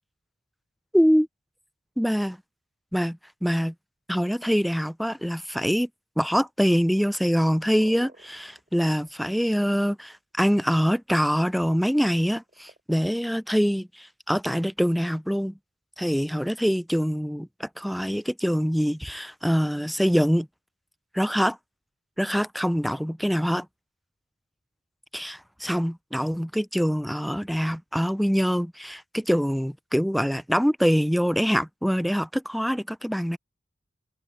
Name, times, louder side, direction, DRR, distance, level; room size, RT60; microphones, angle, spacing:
voice 1, 0.9-1.3 2.0-2.4 2.9-3.7 4.1-5.9 6.2-8.5 8.7-15.5 16.0-20.5 21.1-21.6 22.2-23.7 25.1-33.4, equal, ahead, 0.3 m, -24 dB
sound 1, 6.5-10.1 12.2-12.8, right 2 dB, 35° right, 6.0 m, -50 dB
open air
head